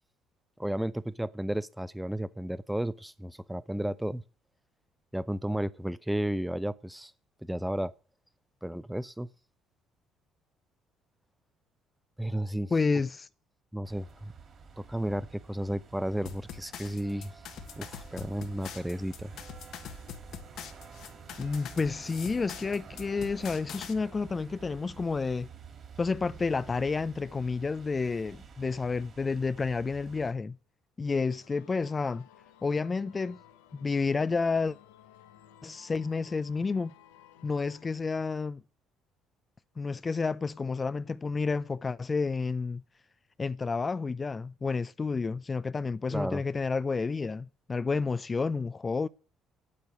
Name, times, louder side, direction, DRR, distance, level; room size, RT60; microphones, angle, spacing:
voice 1, 0.6-4.2 5.1-7.1 7.4-7.9 8.6-9.3 12.2-12.7 13.7-14.3 14.8-17.3 17.8-19.3 46.1-46.4, right 1 dB, 5° right, 0.7 m, -33 dB
voice 2, 12.7-13.3 21.4-25.5 26.0-30.6 31.0-32.3 32.6-33.4 33.7-34.8 35.6-36.9 37.4-38.6 39.8-42.8 43.4-49.1, left 4 dB, 30° left, 0.5 m, -30 dB
sound 1, 13.8-30.3, right 6 dB, 45° right, 2.8 m, -50 dB
sound 2, 16.3-23.9, left 8 dB, 65° left, 1.4 m, -44 dB
sound 3, 31.2-37.9, left 11 dB, 80° left, 1.0 m, -57 dB
8.6 x 8.6 x 9.4 m
hypercardioid pair, 55°, 0 cm